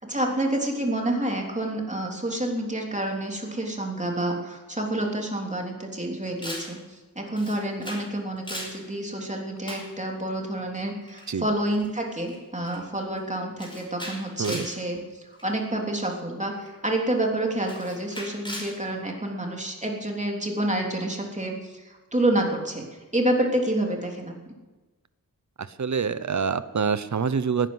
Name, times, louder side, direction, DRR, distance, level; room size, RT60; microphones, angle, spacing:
voice 1, 0.0-22.9 23.1-24.3, right 1 dB, 20° right, 0 dB, 3.3 m, -28 dB
Camera, 6.4-6.7 7.4-8.1 8.4-8.8 9.7-9.9 11.1-11.3 11.7-11.9 12.2-12.4 12.7-13.0 13.6-14.8 15.4-15.6 16.7-16.8 17.6-18.8, equal, 15° left, 5.3 m, -38 dB
voice 2, 25.8-27.7, right 6 dB, 55° right, 14 dB, 0.9 m, -26 dB
17.5 x 10.0 x 7.9 m, 1.2 s
wide cardioid pair, 90°, 35 cm